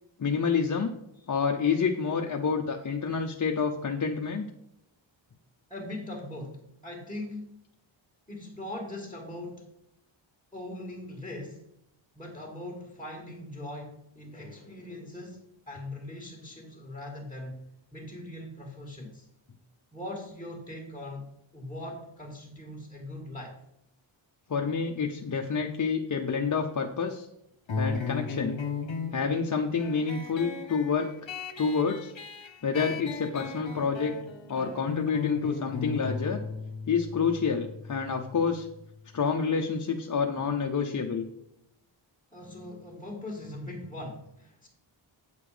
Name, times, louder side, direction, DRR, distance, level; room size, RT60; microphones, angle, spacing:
voice 1, 0.2-0.9 1.3-4.4 24.5-27.3 27.8-28.5 29.1-31.1 31.6-32.1 32.6-34.1 34.5-36.4 36.9-38.7 39.1-41.2, left 5 dB, 40° left, 2 dB, 0.7 m, -28 dB
voice 2, 5.7-7.6 8.3-9.7 10.5-11.6 12.1-17.6 17.9-19.3 19.9-21.3 21.5-23.6 42.3-44.7, left 1 dB, 10° left, -2 dB, 1.9 m, -40 dB
sound 1, 27.7-38.8, left 5 dB, 65° left, 1.1 m, -37 dB
8.8 x 6.9 x 5.0 m, 0.78 s
wide cardioid pair, 150°, 48 cm